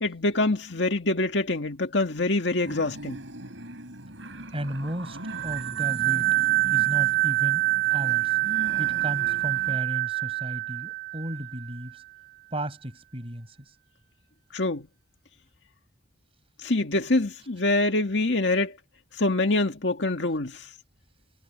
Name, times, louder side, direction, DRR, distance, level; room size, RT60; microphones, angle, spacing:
voice 1, 0.0-3.2 14.5-14.9 16.6-18.7 19.2-20.7, left 2 dB, 65° left, 2.1 m, -25 dB
sound 1, 2.6-9.8, right 1 dB, 85° right, 5.5 m, -41 dB
voice 2, 4.5-5.2 5.4-6.4 6.7-7.6 7.9-8.4 8.8-12.0 12.5-13.6, right 1 dB, 30° right, 7.2 m, -34 dB
sound 2, 5.3-11.7, right 19 dB, 55° right, 1.3 m, -25 dB
head